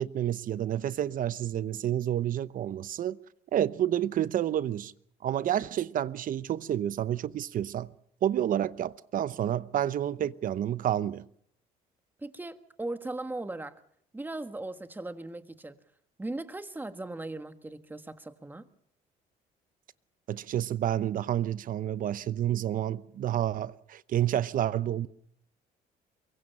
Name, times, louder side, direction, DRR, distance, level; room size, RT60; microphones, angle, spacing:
voice 1, 0.0-3.2 3.5-4.9 5.2-7.9 8.2-11.3 20.3-25.1, right 11 dB, 55° right, 0.8 m, -29 dB
voice 2, 12.2-13.8 14.1-15.8 16.2-18.6, right 2 dB, 10° right, 1.5 m, -38 dB
23.5 x 22.5 x 5.5 m
cardioid pair, 110°, 17 cm